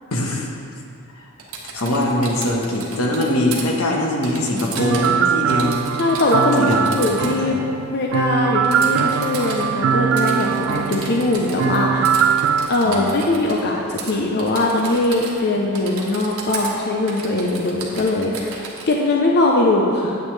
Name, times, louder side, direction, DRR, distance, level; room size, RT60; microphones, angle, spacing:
voice 1, 0.1-0.5 1.7-5.7 6.6-6.9 7.4-7.6 12.8-13.2, left 1 dB, 80° left, 0 dB, 1.2 m, -22 dB
Typing, 1.4-3.6 4.2-5.2 5.5-7.3 8.7-9.7 10.2-11.8 12.0-13.6 14.0-14.1 14.4-15.5 15.7-16.7 17.1-19.0, right 4 dB, 85° right, 1.4 m, -34 dB
sound 1, 4.8-12.7, right 7 dB, 65° right, 0.3 m, -21 dB
voice 2, 6.0-7.6 7.9-12.1 12.7-20.2, left 2 dB, 50° left, -1 dB, 0.7 m, -20 dB
9.2 x 8.7 x 3.3 m, 2.6 s
head